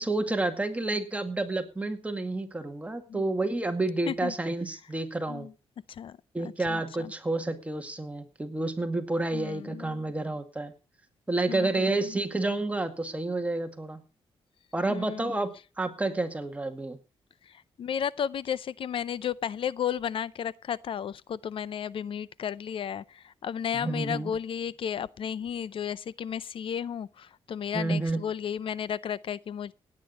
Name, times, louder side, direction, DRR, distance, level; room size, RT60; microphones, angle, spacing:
voice 1, 0.0-5.5 6.3-10.7 11.3-14.0 14.7-17.0 23.7-24.3 27.7-28.2, right 2 dB, 15° right, 2.0 m, -30 dB
voice 2, 6.7-7.1 9.3-10.0 11.5-12.2 14.9-15.4 17.4-29.7, left 8 dB, 65° left, 0.5 m, -33 dB
17.0 x 9.8 x 4.1 m
cardioid pair, 110°, 10 cm